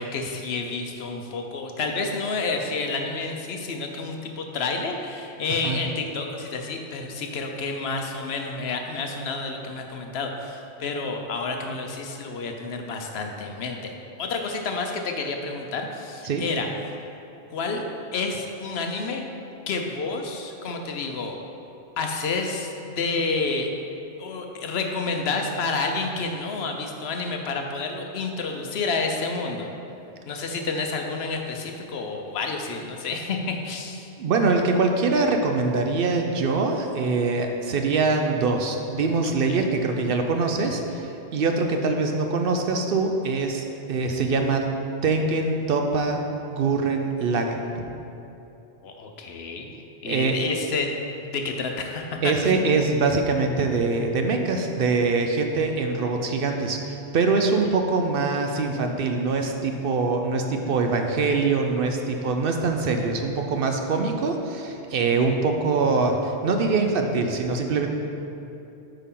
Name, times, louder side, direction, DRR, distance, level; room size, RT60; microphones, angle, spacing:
voice 1, 0.0-13.8 14.2-17.0 17.5-17.8 18.1-19.3 19.7-21.4 22.0-23.7 24.2-29.7 30.3-34.1 39.2-39.6 48.8-50.9 51.2-52.6, left 3 dB, 70° left, 3 dB, 0.9 m, -29 dB
voice 2, 34.2-43.6 43.9-44.6 45.0-46.2 46.5-47.7 50.0-50.3 52.2-67.9, right 4 dB, 60° right, 4 dB, 0.7 m, -23 dB
8.3 x 5.6 x 3.8 m, 2.8 s
omnidirectional pair, 1.1 m